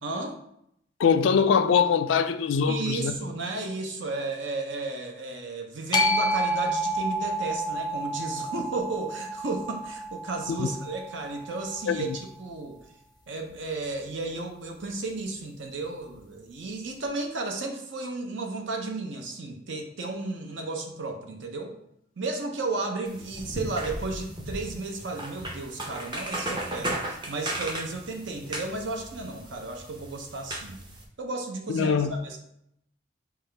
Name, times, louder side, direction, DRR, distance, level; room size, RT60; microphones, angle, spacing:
voice 1, 0.0-0.4 2.7-12.8 13.3-21.8 22.2-30.8 31.2-32.4, right 3 dB, 70° right, 0.6 m, -33 dB
voice 2, 1.0-3.1 10.6-10.7 11.9-12.2 31.7-32.1, left 6 dB, 80° left, 0.3 m, -23 dB
sound 1, 5.9-12.2, equal, 25° left, 0.4 m, -30 dB
sound 2, 23.1-31.0, right 1 dB, 25° right, 0.6 m, -36 dB
5.4 x 2.4 x 3.3 m
head